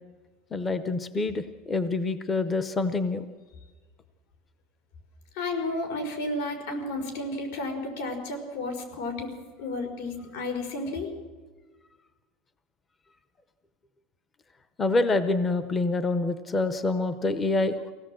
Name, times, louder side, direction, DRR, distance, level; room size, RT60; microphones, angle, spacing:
voice 1, 0.5-3.3 14.8-17.8, left 3 dB, 15° left, 10 dB, 0.7 m, -26 dB
voice 2, 5.4-11.1, left 2 dB, 75° left, 5 dB, 4.7 m, -32 dB
24.5 x 17.0 x 7.6 m, 1.4 s
supercardioid pair, 170°, 0 cm